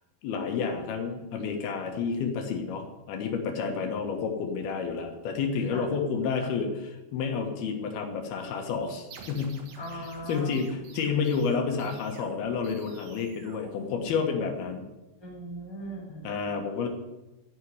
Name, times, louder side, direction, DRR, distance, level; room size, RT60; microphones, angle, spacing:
voice 1, 0.2-9.6 9.9-14.8 16.2-16.9, left 5 dB, 80° left, 3 dB, 3.4 m, -30 dB
sound 1, 9.1-14.5, right 5 dB, 80° right, 3.7 m, -50 dB
voice 2, 9.8-10.5 15.2-16.3, right 1 dB, 5° left, -2 dB, 3.3 m, -39 dB
14.0 x 6.2 x 9.5 m, 1.0 s
omnidirectional pair, 4.5 m